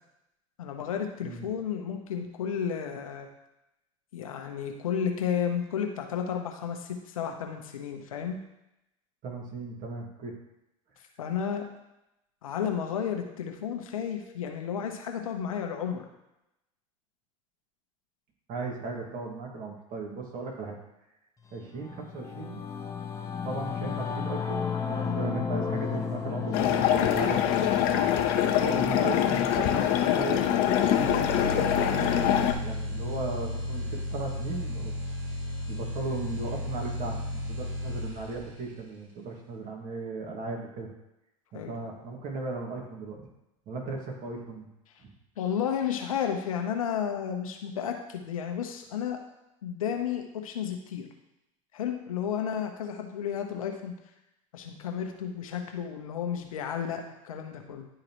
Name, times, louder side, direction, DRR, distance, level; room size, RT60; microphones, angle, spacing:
voice 1, 0.6-3.3 4.1-8.4 11.2-11.6 12.4-16.1 23.8-23.9 27.3-27.6 41.5-41.8 45.0-45.1 45.4-49.2 49.6-51.1 51.7-53.9 54.5-57.9, left 8 dB, 85° left, 3 dB, 1.0 m, -32 dB
voice 2, 9.2-10.3 18.5-20.8 21.5-22.6 23.4-28.0 28.6-32.3 32.6-34.9 35.7-40.9 41.5-43.3 43.7-44.7 45.0-45.1, right 3 dB, 50° right, 0 dB, 2.1 m, -37 dB
Singing / Musical instrument, 21.5-31.2, left 6 dB, 20° left, 1.0 m, -35 dB
sound 1, 26.5-32.5, left 10 dB, 60° left, 0.8 m, -24 dB
sound 2, 30.7-38.7, left 1 dB, 85° right, 2.1 m, -34 dB
11.0 x 3.8 x 3.1 m, 0.90 s
hypercardioid pair, 85°, 17 cm